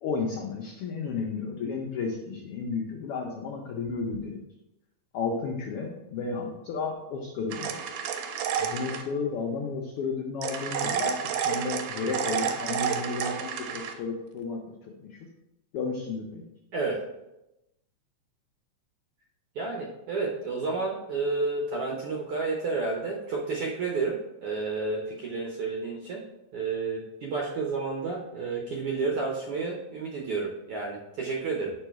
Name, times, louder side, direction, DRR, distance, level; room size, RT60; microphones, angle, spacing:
voice 1, 0.0-4.4 5.1-7.8 8.6-14.6 15.0-15.2 15.7-16.4, left 4 dB, 85° left, 0 dB, 1.3 m, -32 dB
sound 1, 7.5-9.1 10.4-13.9, right 7 dB, 90° right, 2.0 m, -30 dB
voice 2, 19.5-26.2 26.5-31.7, right 4 dB, 70° right, -1 dB, 1.4 m, -31 dB
5.4 x 3.9 x 4.5 m, 0.91 s
omnidirectional pair, 3.4 m